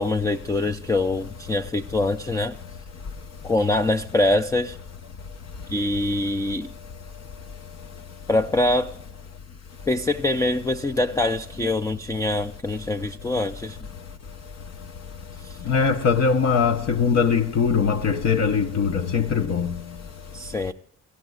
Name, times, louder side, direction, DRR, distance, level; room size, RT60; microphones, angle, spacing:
voice 1, 0.0-2.6 3.4-4.8 5.7-6.7 8.3-8.9 9.9-13.8 15.4-15.6 20.3-20.7, left 2 dB, 10° left, 0.5 m, -24 dB
voice 2, 15.7-19.7, left 6 dB, 60° left, 1.0 m, -21 dB
25.5 x 15.0 x 2.4 m
cardioid pair, 90°, 30 cm